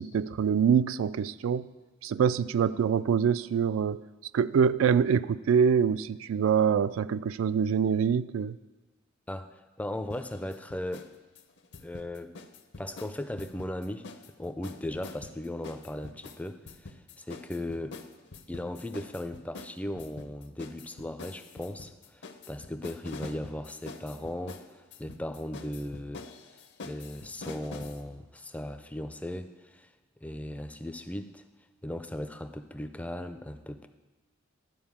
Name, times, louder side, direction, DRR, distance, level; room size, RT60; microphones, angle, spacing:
voice 1, 0.0-1.7 2.0-4.0 4.3-8.6, right 7 dB, 75° right, 16 dB, 0.3 m, -25 dB
voice 2, 9.3-11.1 11.8-12.3 12.8-14.1 14.4-18.0 18.5-26.2 26.8-29.9 30.2-31.4 31.8-33.9, left 1 dB, 5° left, 9 dB, 0.4 m, -37 dB
sound 1, 10.1-11.1 11.4-14.3 14.6-28.0, left 3 dB, 60° left, 0.7 m, -46 dB
11.5 x 4.8 x 7.2 m, 1.2 s
head